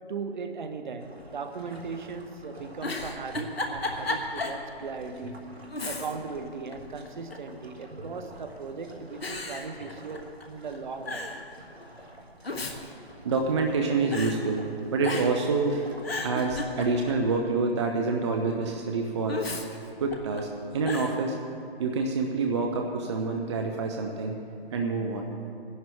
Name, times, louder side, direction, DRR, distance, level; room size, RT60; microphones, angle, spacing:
voice 1, 0.1-11.3, right 4 dB, 50° right, 1.0 m, -38 dB
sound 1, 1.0-16.9, right 1 dB, 85° right, 1.8 m, -48 dB
Giggle, 2.8-4.6 5.0-5.1 5.7-6.4 6.7-7.5 8.3-8.7 9.2-10.4 10.7-10.8 11.1-11.4 12.2-13.8 14.1-14.4 15.0-15.5 15.9-17.2 19.3-20.4 20.9-21.2, left 2 dB, 75° left, 1.5 m, -34 dB
voice 2, 13.2-15.8 16.2-19.4 20.0-21.4 21.8-24.4 24.7-25.3, right 3 dB, 30° right, 0.7 m, -27 dB
19.0 x 11.0 x 3.4 m
figure-of-eight pair, 140°, 31 cm